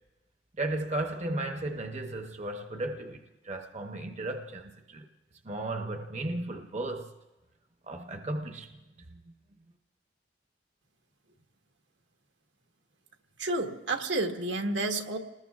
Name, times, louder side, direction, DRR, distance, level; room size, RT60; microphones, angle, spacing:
voice 1, 0.6-5.1 5.4-7.1 7.9-8.7 9.1-9.2, right 2 dB, 40° right, 0.8 m, -35 dB
voice 2, 13.4-15.2, right 2 dB, 80° right, 1.4 m, -30 dB
28.5 x 20.0 x 2.4 m
head